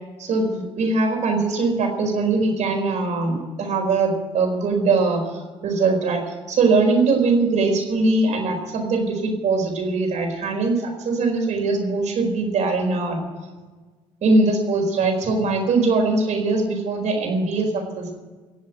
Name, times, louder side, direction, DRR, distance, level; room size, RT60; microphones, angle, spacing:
voice 1, 0.2-13.2 14.2-18.1, right 3 dB, 60° right, 2 dB, 4.7 m, -21 dB
18.5 x 7.6 x 9.2 m, 1.3 s
hypercardioid pair, 55°, 14 cm